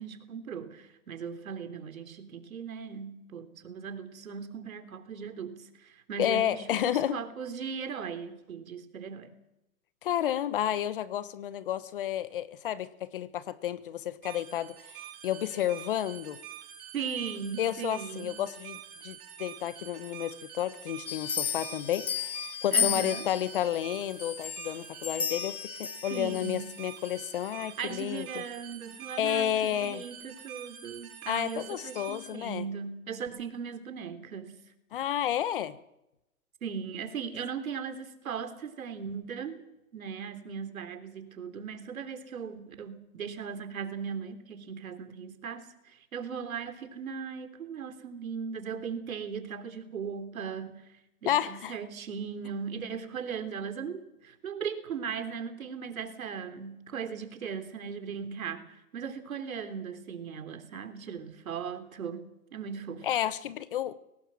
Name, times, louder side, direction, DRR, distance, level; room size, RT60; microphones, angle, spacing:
voice 1, 0.0-9.3 16.9-18.3 22.7-23.3 26.1-26.7 27.8-34.6 36.6-50.9 51.2-63.1, right 6 dB, 70° right, 3.6 m, -38 dB
voice 2, 6.2-7.2 10.0-15.0 15.2-16.4 17.6-22.3 22.6-28.4 29.2-30.0 31.3-32.6 34.9-35.8 51.3-51.8 63.0-63.9, left 11 dB, 40° left, 1.1 m, -31 dB
sound 1, 14.2-32.3, right 10 dB, 25° right, 5.9 m, -46 dB
sound 2, 21.1-23.6 24.2-26.5 27.0-27.2, left 8 dB, 90° left, 3.4 m, -33 dB
23.5 x 18.5 x 7.6 m
hypercardioid pair, 155°, 43 cm